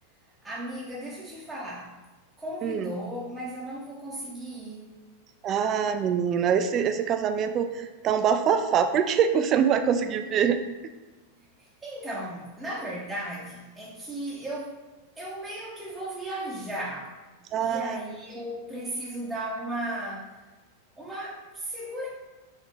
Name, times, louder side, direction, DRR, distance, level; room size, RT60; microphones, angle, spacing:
voice 1, 0.4-1.9 2.4-4.9 11.6-14.8 15.2-17.2 17.6-20.4 21.0-22.1, right 1 dB, 10° right, -7 dB, 0.7 m, -36 dB
voice 2, 2.6-2.9 5.4-10.6 17.5-18.0, right 7 dB, 30° right, 8 dB, 0.3 m, -24 dB
4.1 x 2.9 x 3.5 m, 1.2 s
figure-of-eight pair, 90°, 0 cm